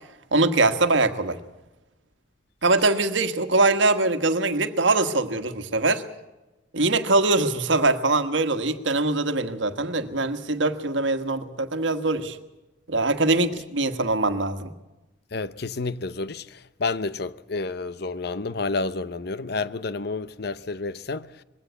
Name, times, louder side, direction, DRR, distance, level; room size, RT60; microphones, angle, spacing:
voice 1, 0.3-1.4 2.6-6.0 6.7-12.4 12.9-14.7, right 2 dB, 80° right, 1.5 m, -22 dB
voice 2, 15.3-21.3, left 3 dB, 55° left, 0.7 m, -30 dB
21.5 x 16.5 x 8.2 m
head